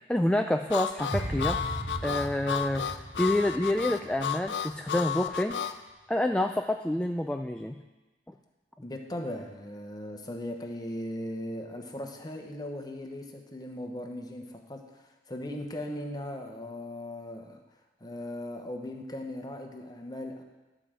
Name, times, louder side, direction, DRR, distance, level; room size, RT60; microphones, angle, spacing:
voice 1, 0.1-1.6 2.0-5.6 6.1-7.8, left 1 dB, 5° left, 4 dB, 0.3 m, -28 dB
Harmonica, 0.7-5.8, left 8 dB, 70° left, 0.5 m, -33 dB
sound 1, 1.1-4.3 4.6-4.8, right 1 dB, 85° right, 1.8 m, -37 dB
voice 2, 8.8-17.6 18.0-20.4, left 1 dB, 25° left, 3 dB, 1.0 m, -38 dB
11.5 x 5.0 x 7.4 m, 1.1 s
head